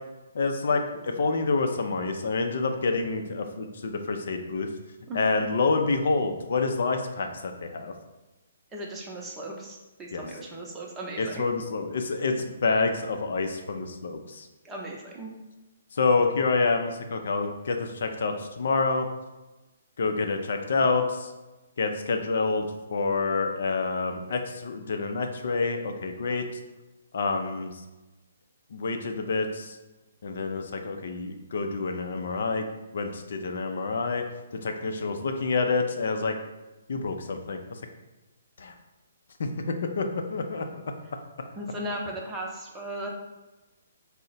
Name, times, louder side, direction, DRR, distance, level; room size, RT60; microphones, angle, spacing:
voice 1, 0.3-4.7 5.1-7.9 10.1-10.2 11.2-14.5 16.0-19.1 20.0-21.2 21.8-26.4 27.1-27.7 28.7-29.7 30.2-32.7 32.9-34.2 34.6-36.3 36.9-37.6 38.6-38.7 39.4-40.8, left 4 dB, 65° left, 5 dB, 0.5 m, -27 dB
voice 2, 8.7-11.5 14.6-15.3 41.5-43.1, right 1 dB, 15° right, -2 dB, 0.7 m, -36 dB
3.7 x 2.1 x 4.0 m, 1.1 s
figure-of-eight pair, 135°, 0 cm